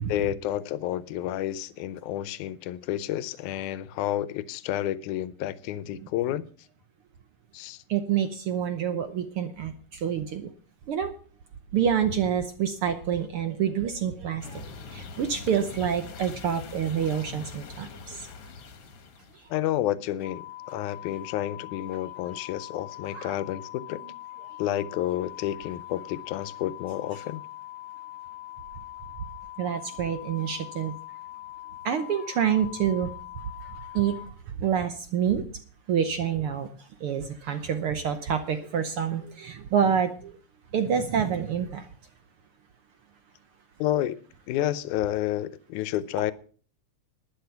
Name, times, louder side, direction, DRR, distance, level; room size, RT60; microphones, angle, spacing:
voice 1, 0.1-6.5 7.5-7.8 19.5-24.0 24.6-27.4 43.8-44.2 44.5-46.3, left 13 dB, 80° left, 2.1 m, -30 dB
voice 2, 7.9-9.7 10.0-10.5 10.9-11.1 11.7-14.6 14.9-18.2 23.1-23.4 29.6-30.9 31.8-33.1 33.9-34.1 34.6-35.4 35.9-36.7 37.0-40.3 40.7-41.8, right 8 dB, 70° right, 1.4 m, -27 dB
sound 1, 14.4-19.5, left 4 dB, 55° left, 1.9 m, -42 dB
sound 2, 20.2-34.3, left 16 dB, 45° right, 2.3 m, -42 dB
11.5 x 10.5 x 5.8 m
omnidirectional pair, 3.5 m